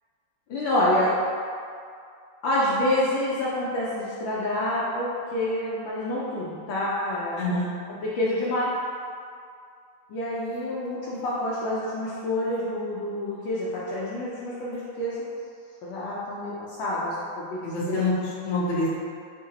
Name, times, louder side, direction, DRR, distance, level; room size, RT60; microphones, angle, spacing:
voice 1, 0.5-1.2 2.4-7.4 8.0-8.7 10.1-15.2 15.8-17.6 17.9-18.1, left 1 dB, 70° left, -7 dB, 1.2 m, -27 dB
voice 2, 7.4-7.7 17.6-18.9, left 2 dB, 45° left, -8 dB, 1.0 m, -26 dB
4.1 x 3.8 x 2.8 m, 2.3 s
omnidirectional pair, 2.3 m